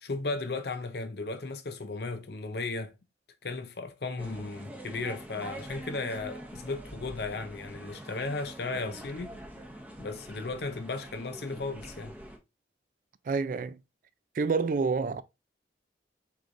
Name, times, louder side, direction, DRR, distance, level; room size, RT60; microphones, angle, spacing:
voice 1, 0.0-2.9 3.4-9.4 10.0-12.2, left 3 dB, 60° left, 0.6 m, -35 dB
sound 1, 4.2-12.4, right 1 dB, 10° right, 0.8 m, -45 dB
voice 2, 13.3-13.8 14.3-15.2, right 4 dB, 45° right, 0.3 m, -28 dB
4.7 x 3.9 x 2.5 m
head